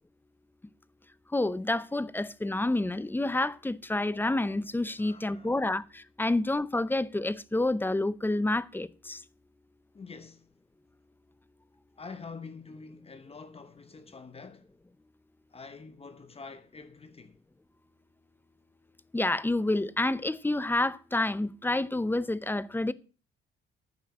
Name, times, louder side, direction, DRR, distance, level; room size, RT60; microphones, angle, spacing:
voice 1, 1.3-5.8 6.2-9.2 19.1-22.9, left 2 dB, 10° left, 0.6 m, -28 dB
voice 2, 5.0-5.6 9.9-10.5 12.0-14.7 15.5-17.4, left 4 dB, 30° left, 1.0 m, -46 dB
9.6 x 6.7 x 7.7 m
cardioid pair, 90°, 20 cm